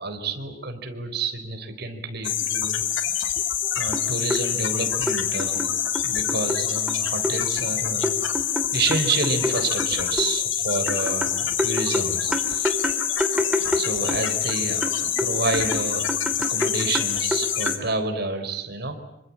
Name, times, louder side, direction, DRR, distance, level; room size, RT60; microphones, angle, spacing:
voice 1, 0.0-2.8 3.8-5.7 6.0-8.1 8.7-12.8 13.6-16.1 16.4-19.0, right 3 dB, 55° right, 7 dB, 4.1 m, -29 dB
sound 1, 2.2-17.8, left 10 dB, 70° left, 2.6 m, -26 dB
sound 2, 3.6-3.7 3.9-4.4 5.1-6.6 6.9-7.4 8.0-10.3 10.9-14.5 14.8-17.8, equal, 5° right, 2.6 m, -28 dB
27.0 x 24.5 x 8.6 m, 0.85 s
head